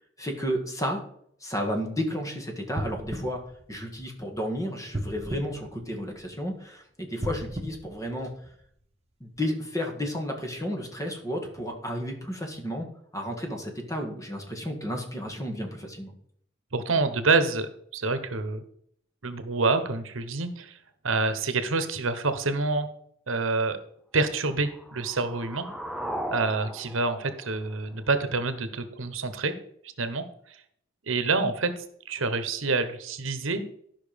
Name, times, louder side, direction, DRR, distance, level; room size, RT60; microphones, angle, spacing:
voice 1, 0.2-1.0 1.4-3.4 3.7-8.3 9.2-12.9 13.1-16.1, equal, 15° left, 2 dB, 1.8 m, -32 dB
sound 1, 2.7-4.4 4.9-6.5 7.1-8.8 9.4-9.5, right 1 dB, 35° right, 1.3 m, -36 dB
voice 2, 16.7-18.6 19.2-20.8 21.0-22.9 23.3-23.8 24.1-25.7 26.3-29.5 30.0-30.6 31.1-31.7 32.1-33.6, right 3 dB, 85° right, 10 dB, 1.1 m, -27 dB
sound 2, 24.5-28.4, equal, ahead, 0.6 m, -38 dB
12.0 x 5.9 x 5.2 m, 0.67 s
head